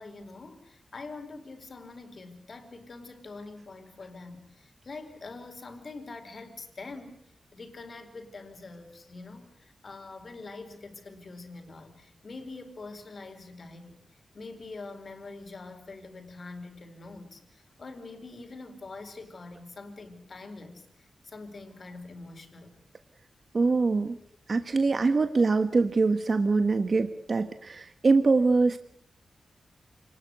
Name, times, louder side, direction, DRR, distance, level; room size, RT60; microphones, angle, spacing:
voice 1, 0.0-7.2 7.5-14.0 14.3-22.7, left 3 dB, 45° left, 6 dB, 4.6 m, -44 dB
voice 2, 23.5-24.2 24.5-28.8, right 3 dB, 40° right, 9 dB, 1.3 m, -24 dB
28.5 x 20.0 x 8.1 m, 0.64 s
wide cardioid pair, 140°, 0 cm